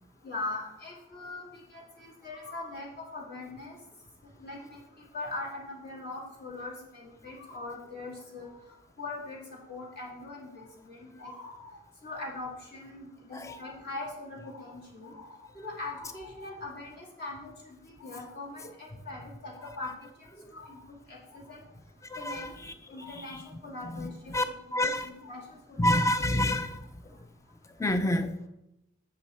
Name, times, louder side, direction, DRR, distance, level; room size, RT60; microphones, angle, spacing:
voice 1, 0.2-3.8 4.4-4.8 5.1-8.6 9.0-9.4 9.7-11.7 12.0-20.1 20.5-21.6 22.2-22.5 22.9-25.9, left 2 dB, 45° left, -4 dB, 2.4 m, -41 dB
voice 2, 22.1-22.5 23.2-23.3 23.9-24.4 24.7-25.1 25.8-26.8 27.8-28.3, left 1 dB, 15° left, 9 dB, 0.5 m, -28 dB
8.5 x 6.7 x 4.4 m, 0.89 s
head